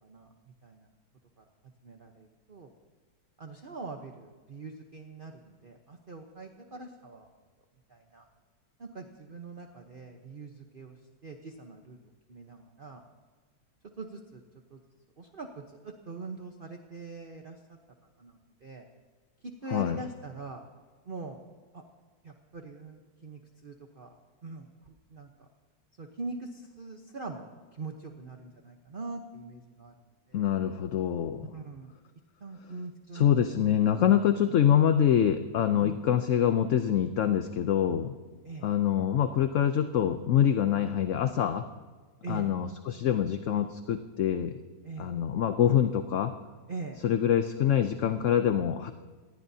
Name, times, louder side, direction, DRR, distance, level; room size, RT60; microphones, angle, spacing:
voice 1, 0.0-0.9 1.4-1.5 1.8-2.7 3.4-7.4 7.9-8.2 8.8-13.0 14.0-14.4 14.7-14.8 15.2-17.6 18.2-18.9 19.4-20.6 21.0-21.4 21.7-21.8 22.2-25.5 26.0-29.9 30.3-30.5 31.5-31.9 32.4-33.3 34.6-34.7 35.8-36.0 38.4-38.7 42.2-42.5 44.8-45.1 46.7-47.0, right 3 dB, 40° right, 3 dB, 1.0 m, -43 dB
voice 2, 30.3-31.5 33.1-38.1 38.6-41.7 42.3-44.6 45.0-46.3 47.0-48.9, left 9 dB, 60° left, 9 dB, 0.9 m, -25 dB
27.0 x 19.5 x 2.8 m, 1.4 s
omnidirectional pair, 1.7 m